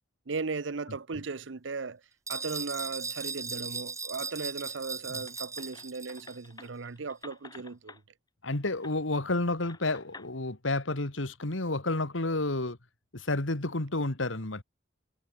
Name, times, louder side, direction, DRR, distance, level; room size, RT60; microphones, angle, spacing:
voice 1, 0.3-2.0 2.3-8.0, right 4 dB, 75° right, 0.8 m, -37 dB
sound 1, 2.3-6.4, right 5 dB, 15° right, 3.0 m, -38 dB
sound 2, 5.2-8.0 8.8-9.0 9.6-10.3, left 3 dB, 20° left, 3.0 m, -50 dB
voice 2, 8.4-12.8 13.1-14.6, left 2 dB, 85° left, 2.2 m, -30 dB
head